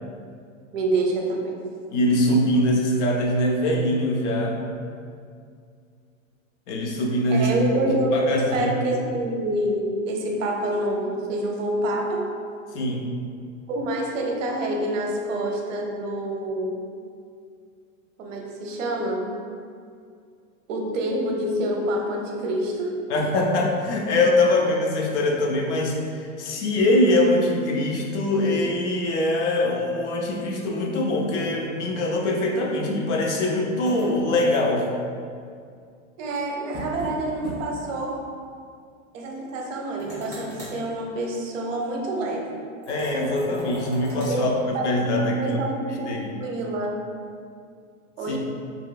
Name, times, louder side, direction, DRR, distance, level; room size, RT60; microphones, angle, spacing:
voice 1, 0.7-1.5 7.3-12.3 13.7-16.8 18.2-19.3 20.7-22.9 36.2-38.2 39.1-42.6 44.3-44.5 44.7-44.9 45.2-46.1 46.4-46.9 48.2-48.4, right 1 dB, 65° right, 0 dB, 0.6 m, -27 dB
voice 2, 1.9-4.6 6.7-7.5 7.9-8.7 12.7-13.1 23.1-34.9 42.9-45.6 46.1-46.4 48.3-48.4, left 1 dB, 60° left, 0 dB, 0.5 m, -23 dB
sound 1, 33.9-34.9 36.7-37.1 37.4-37.6 37.9-38.0 40.0-40.8 42.8-44.4, equal, 5° left, 0.9 m, -37 dB
2.9 x 2.9 x 2.2 m, 2.3 s
supercardioid pair, 170°, 40 cm